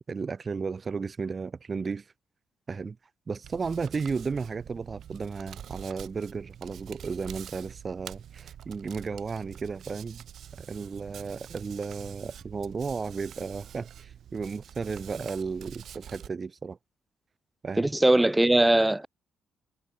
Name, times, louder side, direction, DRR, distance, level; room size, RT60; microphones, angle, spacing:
voice 1, 0.1-2.1 2.7-3.0 3.3-10.2 10.6-16.8 17.6-17.9, right 5 dB, 35° right, 1.7 m, -34 dB
Hands, 3.4-16.3, right 10 dB, 65° right, 6.2 m, -46 dB
voice 2, 17.8-19.1, right 1 dB, 10° right, 2.7 m, -21 dB
cardioid pair, 90°, 0 cm